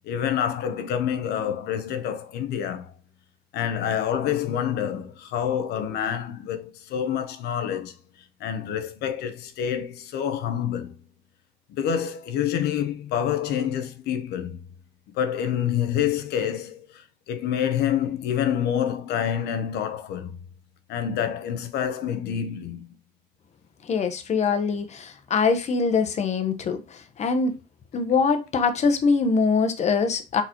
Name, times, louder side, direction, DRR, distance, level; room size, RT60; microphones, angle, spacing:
voice 1, 0.1-2.9 3.5-7.9 8.4-10.9 11.8-14.6 15.2-16.9 17.3-20.4 20.9-22.9, left 9 dB, 75° left, 0.8 m, -27 dB
voice 2, 23.9-27.6 27.9-30.4, left 5 dB, 40° left, 0.9 m, -23 dB
4.2 x 4.1 x 2.9 m
cardioid pair, 110°, 17 cm